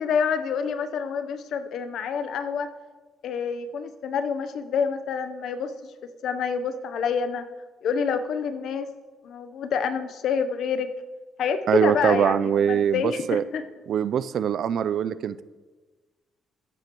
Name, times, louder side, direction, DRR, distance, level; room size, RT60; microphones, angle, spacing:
voice 1, 0.0-2.7 3.2-5.9 6.2-7.5 7.8-8.9 9.2-10.9 11.4-13.6, left 6 dB, 70° left, 10 dB, 0.7 m, -27 dB
voice 2, 11.7-13.4 13.9-15.4, right 8 dB, 65° right, 15 dB, 0.4 m, -23 dB
14.0 x 9.9 x 3.0 m, 1.3 s
cardioid pair, 95°, 0 cm